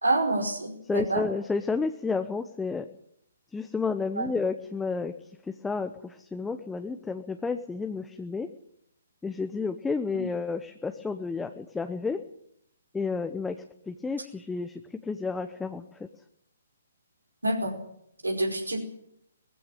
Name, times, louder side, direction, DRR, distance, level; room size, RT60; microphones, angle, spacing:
voice 1, 0.0-1.2 4.2-4.3 10.1-10.2 17.4-17.7 18.2-18.8, right 2 dB, 85° right, 5 dB, 4.8 m, -27 dB
voice 2, 0.9-2.9 3.5-5.1 5.4-8.5 9.2-12.2 12.9-16.1, left 4 dB, 5° left, 7 dB, 0.9 m, -31 dB
19.5 x 15.0 x 9.2 m, 0.74 s
figure-of-eight pair, 130°, 0 cm